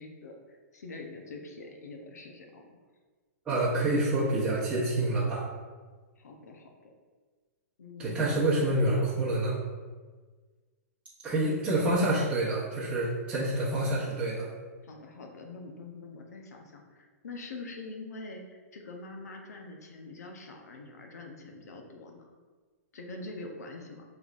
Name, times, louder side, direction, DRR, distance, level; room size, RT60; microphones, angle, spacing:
voice 1, 0.0-2.7 6.2-6.9 7.8-8.5 14.8-22.3 22.9-24.0, left 3 dB, 85° left, 2 dB, 0.8 m, -44 dB
voice 2, 3.4-5.4 8.0-9.6 11.2-14.5, right 1 dB, 15° right, -10 dB, 1.0 m, -27 dB
5.4 x 3.3 x 2.5 m, 1.4 s
hypercardioid pair, 135°, 9 cm